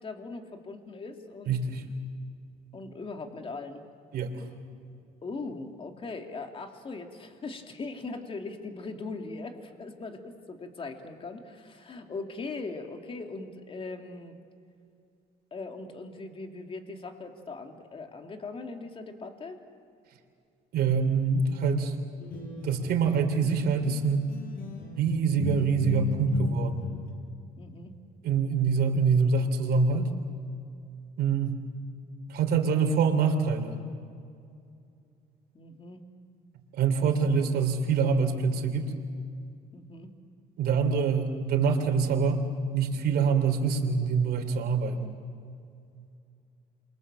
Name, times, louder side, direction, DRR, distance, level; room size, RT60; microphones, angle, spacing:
voice 1, 0.0-1.6 2.7-3.8 5.2-14.4 15.5-19.6 27.6-27.9 35.5-36.0 37.0-37.1 39.7-40.1, left 3 dB, 30° left, 4 dB, 2.7 m, -40 dB
voice 2, 1.5-1.8 4.1-4.4 20.7-21.9 22.6-24.2 25.0-26.9 28.2-30.1 31.2-31.6 32.3-33.8 36.7-38.9 40.6-45.1, right 5 dB, 70° right, 4 dB, 3.4 m, -25 dB
sound 1, 22.2-24.0 24.3-27.1, left 6 dB, 55° left, 5.9 m, -37 dB
28.0 x 23.5 x 7.5 m, 2.4 s
cardioid pair, 110°, 17 cm